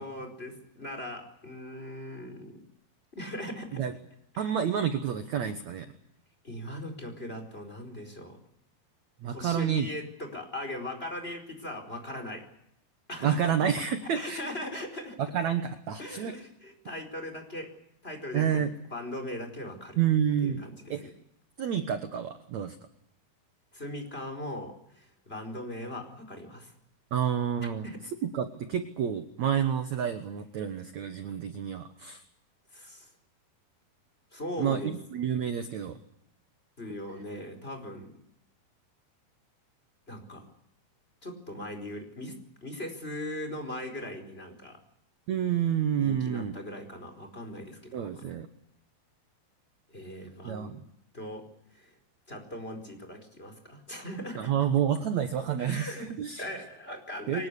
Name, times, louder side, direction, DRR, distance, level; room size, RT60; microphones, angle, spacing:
voice 1, 0.0-2.6 3.2-3.8 4.3-4.5 6.4-8.4 9.3-12.4 13.1-13.7 14.0-15.2 16.0-17.7 18.0-20.0 20.4-21.1 23.7-26.7 27.8-28.0 32.7-33.1 34.3-34.9 36.8-38.1 40.1-40.4 41.2-42.3 42.6-44.8 46.0-48.2 49.9-50.7 51.1-51.4 51.7-52.0 52.3-54.5 55.6-56.1 56.4-57.5, left 1 dB, 15° left, 5 dB, 4.6 m, -39 dB
voice 2, 4.4-5.9 9.2-9.9 13.2-14.4 15.2-16.3 18.3-18.7 20.0-20.6 20.9-21.1 21.6-22.8 27.1-27.9 28.2-32.2 34.6-36.0 45.3-46.5 47.9-48.5 50.4-50.8 54.4-56.5 57.3-57.5, right 8 dB, 60° right, 9 dB, 2.0 m, -29 dB
24.0 x 20.5 x 8.4 m, 0.76 s
omnidirectional pair, 4.5 m